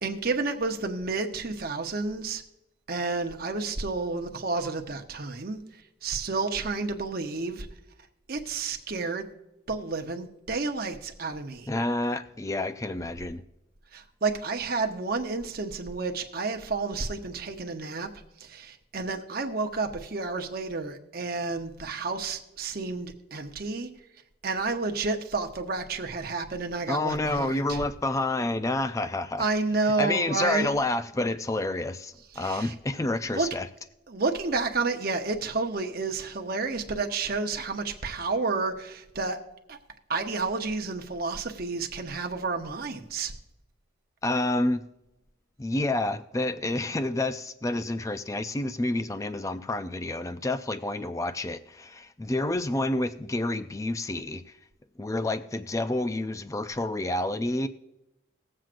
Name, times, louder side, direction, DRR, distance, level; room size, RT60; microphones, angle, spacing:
voice 1, 0.0-2.4 2.9-5.6 6.0-7.7 8.3-9.3 9.7-11.7 13.9-18.1 18.4-23.9 24.4-27.8 29.4-30.7 32.3-32.7 33.3-33.5 34.1-39.4 39.7-39.8 40.1-43.3, right 3 dB, 50° right, 0.8 m, -30 dB
voice 2, 11.7-13.4 26.9-29.4 30.0-33.7 44.2-44.8 45.6-54.4 55.0-57.7, left 2 dB, 15° left, 0.3 m, -29 dB
19.5 x 7.5 x 2.5 m
head